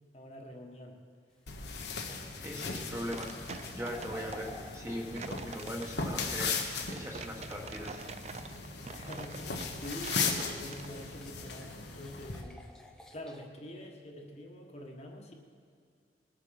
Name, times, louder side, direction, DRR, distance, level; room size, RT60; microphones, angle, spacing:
voice 1, 0.1-1.0 8.9-12.6 13.1-15.3, left 1 dB, 35° left, 0 dB, 1.4 m, -45 dB
sound 1, 1.3-6.9 10.0-10.1 11.2-13.5, left 1 dB, 5° left, 0.8 m, -53 dB
sound 2, 1.5-12.4, left 4 dB, 75° left, 1.4 m, -38 dB
voice 2, 2.4-6.6 6.9-8.0, equal, 15° right, -1 dB, 1.5 m, -40 dB
sound 3, 2.9-11.2, right 5 dB, 40° right, 0.5 m, -46 dB
20.0 x 8.3 x 5.9 m, 2.3 s
head